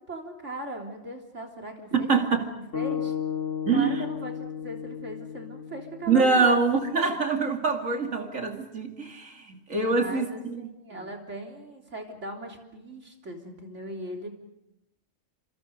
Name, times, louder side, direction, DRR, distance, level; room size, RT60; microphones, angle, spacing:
voice 1, 0.1-3.1 3.7-6.6 9.8-14.3, right 1 dB, 65° right, 3.8 m, -38 dB
voice 2, 1.9-2.5 3.7-4.0 6.1-10.6 11.0-11.1, right 4 dB, 85° right, 2.9 m, -24 dB
sound 1, 2.7-7.0, left 8 dB, 75° left, 2.7 m, -34 dB
28.5 x 26.5 x 5.2 m
omnidirectional pair, 1.3 m